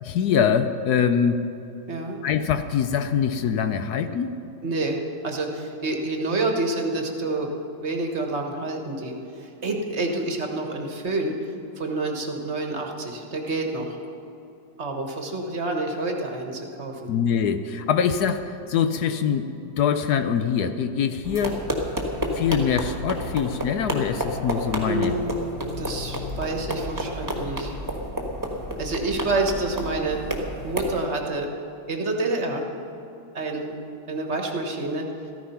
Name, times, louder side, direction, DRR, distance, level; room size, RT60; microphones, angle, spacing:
voice 1, 0.0-1.4 2.2-4.3 17.1-19.5 19.8-21.6 22.3-25.2, left 7 dB, 70° left, 10 dB, 1.0 m, -23 dB
voice 2, 4.6-7.5 7.8-14.0 14.8-17.1 24.8-25.4 25.8-27.7 28.8-30.2 30.6-31.5 31.9-32.7 33.3-33.8 34.1-35.1, right 2 dB, 40° right, 2 dB, 1.4 m, -28 dB
sound 1, 21.2-31.0, equal, 10° right, 1.5 m, -30 dB
14.0 x 14.0 x 5.7 m, 2.9 s
omnidirectional pair, 2.2 m